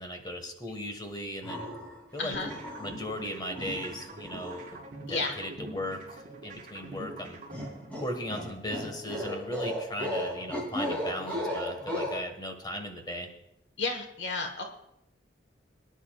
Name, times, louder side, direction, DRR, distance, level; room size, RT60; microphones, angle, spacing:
voice 1, 0.0-1.7 2.1-2.5 2.8-4.8 5.1-7.4 8.0-13.3, equal, 25° left, 4 dB, 1.7 m, -37 dB
sound 1, 1.4-2.0 2.3-3.1 3.6-4.7 7.5-12.2, equal, 10° left, 3.2 m, -35 dB
voice 2, 2.2-2.5 5.1-5.3 13.8-14.6, left 3 dB, 85° left, 5 dB, 1.5 m, -32 dB
sound 2, 2.3-8.3, right 2 dB, 50° right, 4.4 m, -44 dB
23.0 x 10.0 x 2.5 m, 0.79 s
head